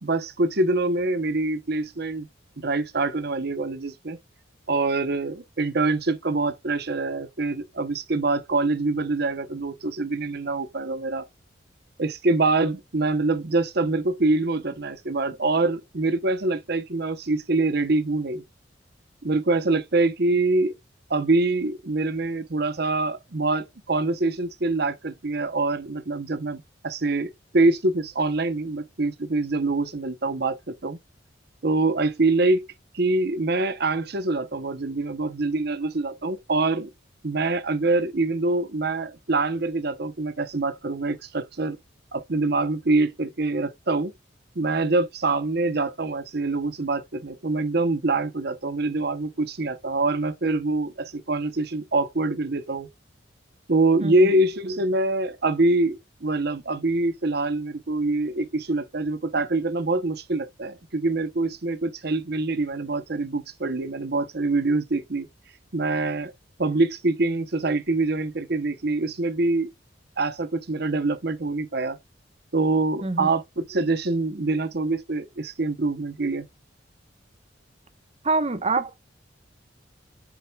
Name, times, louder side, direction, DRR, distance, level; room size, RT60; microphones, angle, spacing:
voice 1, 0.0-2.3 2.6-4.2 4.7-11.3 12.0-18.4 19.2-20.7 21.1-31.0 31.6-32.7 32.9-36.9 37.2-41.8 42.1-44.1 44.6-52.9 53.7-65.3 65.7-66.3 66.6-69.7 70.2-72.0 72.5-76.5, right 2 dB, 60° right, 0.9 m, -25 dB
voice 2, 54.0-54.3 73.0-73.3 78.2-79.0, right 3 dB, 35° right, 1.1 m, -25 dB
7.4 x 6.7 x 2.3 m
head